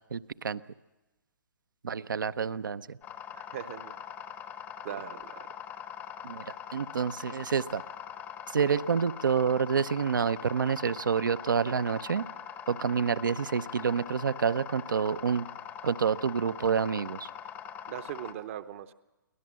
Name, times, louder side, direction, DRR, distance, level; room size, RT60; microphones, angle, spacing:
voice 1, 0.1-0.6 1.8-3.0 6.2-7.8 8.5-12.3 12.7-15.4 15.8-17.3, right 6 dB, 70° right, 13 dB, 0.7 m, -28 dB
sound 1, 3.0-18.3, left 9 dB, 15° left, 0.8 m, -42 dB
voice 2, 3.3-3.9 4.8-5.5 17.9-18.9, right 11 dB, 40° right, 13 dB, 0.8 m, -40 dB
24.0 x 17.5 x 7.5 m, 1.1 s
figure-of-eight pair, 135°, 11 cm